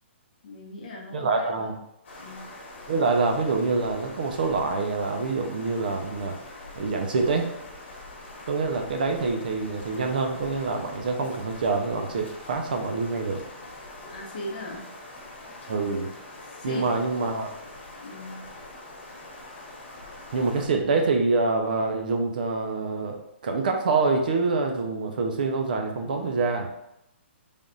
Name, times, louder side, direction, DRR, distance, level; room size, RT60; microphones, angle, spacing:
voice 1, 0.4-1.8 2.2-2.4 14.1-14.9 16.4-16.9 18.0-18.5, left 2 dB, 40° left, -2 dB, 0.9 m, -39 dB
voice 2, 1.1-1.8 2.9-6.4 6.7-7.5 8.5-13.4 15.7-16.1 16.6-17.5 20.3-26.7, right 3 dB, 45° right, 3 dB, 0.5 m, -26 dB
sound 1, 2.0-20.7, left 2 dB, 60° left, 1.2 m, -43 dB
3.3 x 2.4 x 3.9 m, 0.83 s
hypercardioid pair, 175°, 7 cm